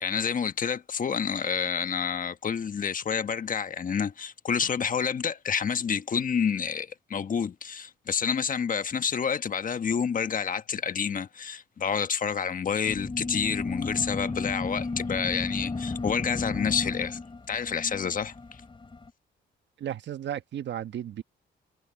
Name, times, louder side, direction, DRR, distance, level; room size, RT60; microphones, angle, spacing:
voice 1, 0.0-17.2 17.5-18.3, left 6 dB, 45° left, 1.3 m, -29 dB
sound 1, 12.8-19.1, left 3 dB, 25° left, 2.8 m, -33 dB
voice 2, 19.8-21.2, right 10 dB, 65° right, 1.3 m, -34 dB
cardioid pair, 90°, 20 cm